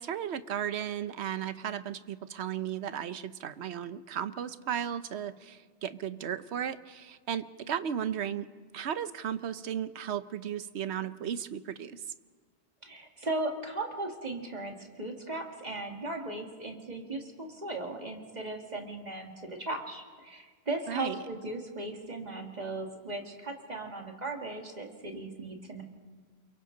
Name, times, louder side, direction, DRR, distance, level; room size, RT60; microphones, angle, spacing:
voice 1, 0.0-8.5 8.7-12.0 20.9-21.2, right 9 dB, 80° right, 13 dB, 1.0 m, -35 dB
voice 2, 12.8-25.8, right 2 dB, 40° right, 2 dB, 2.2 m, -37 dB
29.0 x 23.0 x 3.9 m, 1.5 s
omnidirectional pair, 1.1 m